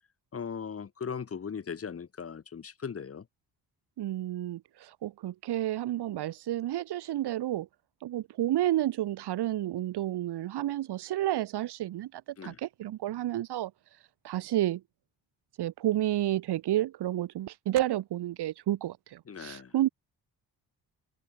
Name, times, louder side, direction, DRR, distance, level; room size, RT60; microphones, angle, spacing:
voice 1, 0.3-3.3 12.4-12.6 19.3-19.7, left 6 dB, 35° left, 2.2 m, -38 dB
voice 2, 4.0-7.7 8.0-13.7 14.2-14.8 15.6-19.9, right 13 dB, 75° right, 1.2 m, -31 dB
cardioid pair, 145°, 40 cm